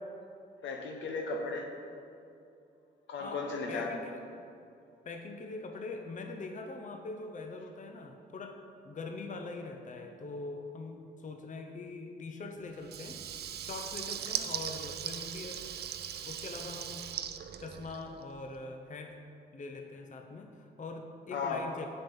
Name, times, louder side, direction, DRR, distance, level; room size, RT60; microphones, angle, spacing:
voice 1, 0.6-1.7 3.1-4.0 21.3-21.7, left 3 dB, 70° left, 3 dB, 0.9 m, -35 dB
voice 2, 3.2-4.2 5.0-8.6 8.8-15.6 16.2-17.1 17.6-19.2 19.5-21.9, left 3 dB, 40° left, 5 dB, 0.7 m, -43 dB
Water tap faucet / Liquid, 12.8-18.3, right 9 dB, 55° right, 0.5 m, -39 dB
7.7 x 5.4 x 4.3 m, 2.6 s
hypercardioid pair, 45°, 20 cm